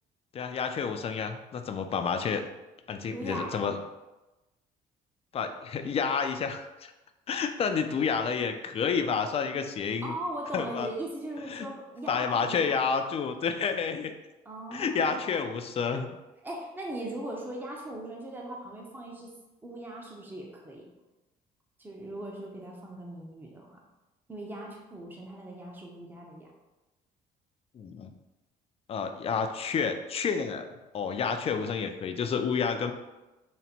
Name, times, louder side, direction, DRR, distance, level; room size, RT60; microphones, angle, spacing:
voice 1, 0.3-2.4 2.9-3.8 5.3-6.9 7.3-10.1 10.5-10.9 11.5-11.7 12.1-14.1 14.7-16.2 27.7-28.1 28.9-30.7 30.9-32.9, left 6 dB, 35° left, 7 dB, 0.4 m, -29 dB
voice 2, 3.1-3.8 10.0-12.8 14.5-15.2 16.4-19.3 19.6-20.8 21.8-23.8 24.3-26.5, right 1 dB, 10° right, -2 dB, 0.7 m, -39 dB
3.9 x 2.2 x 4.2 m, 1.1 s
cardioid pair, 110°, 17 cm